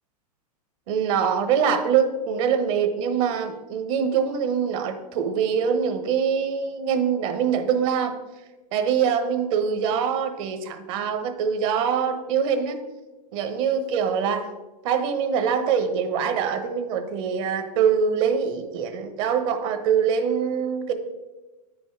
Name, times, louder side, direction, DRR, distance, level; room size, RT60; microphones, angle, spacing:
voice 1, 0.9-8.1 8.7-12.8 13.3-14.5 14.8-20.9, right 7 dB, 50° right, 9 dB, 1.1 m, -24 dB
9.2 x 5.4 x 4.7 m, 1.2 s
hypercardioid pair, 120°, 21 cm